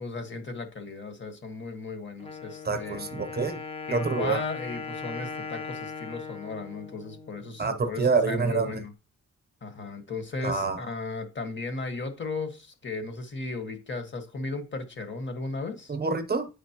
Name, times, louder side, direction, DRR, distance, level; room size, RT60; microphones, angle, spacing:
voice 1, 0.0-3.1 3.9-8.9 9.6-16.0, left 3 dB, 40° left, 1.4 m, -35 dB
Wind instrument woodwind instrument, 2.2-7.9, left 4 dB, 20° left, 0.7 m, -39 dB
voice 2, 2.7-3.6 3.9-4.4 7.6-8.7 10.4-10.8 15.9-16.5, right 4 dB, 35° right, 0.8 m, -26 dB
8.5 x 5.2 x 2.9 m
cardioid pair, 110°, 30 cm